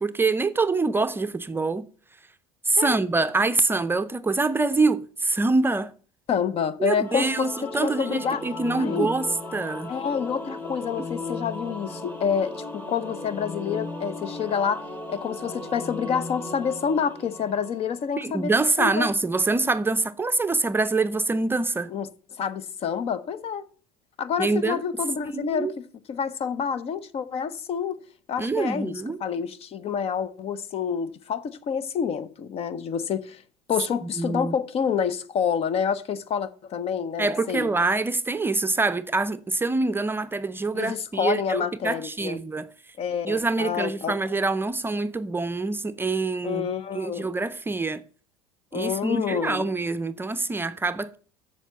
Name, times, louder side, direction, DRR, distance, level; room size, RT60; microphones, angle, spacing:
voice 1, 0.0-1.9 2.6-5.9 6.8-9.9 11.0-11.1 18.2-21.9 24.4-24.8 25.3-25.7 28.4-29.2 34.0-34.6 37.2-42.7 43.2-46.7 46.9-48.0 48.7-51.2, right 3 dB, 15° right, 0.6 m, -25 dB
voice 2, 6.3-8.4 8.8-9.1 9.9-14.8 15.1-18.5 18.8-19.1 21.9-22.1 22.4-23.7 24.2-28.0 28.3-33.4 33.7-37.7 40.7-42.4 43.0-44.2 46.4-47.3 48.7-49.7, left 7 dB, 45° left, 0.9 m, -28 dB
Singing / Musical instrument, 6.9-18.2, left 2 dB, 15° left, 2.0 m, -36 dB
7.3 x 7.0 x 8.0 m
supercardioid pair, 85°, 14 cm